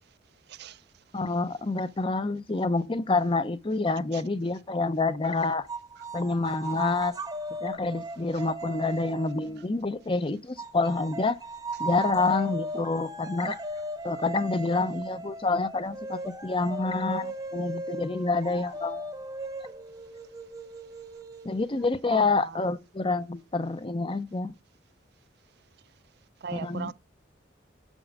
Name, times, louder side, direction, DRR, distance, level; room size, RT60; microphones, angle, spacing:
voice 1, 0.5-0.8 4.1-4.2 22.1-22.6 26.4-26.9, right 5 dB, 60° right, 0.4 m, -38 dB
voice 2, 1.1-5.7 6.1-7.1 7.6-11.4 11.8-13.6 14.0-19.1 21.4-24.5 26.5-26.9, left 3 dB, 30° left, 0.6 m, -27 dB
sound 1, 5.7-10.0 10.6-21.9, right 2 dB, 20° right, 0.8 m, -37 dB
7.3 x 5.3 x 4.8 m
head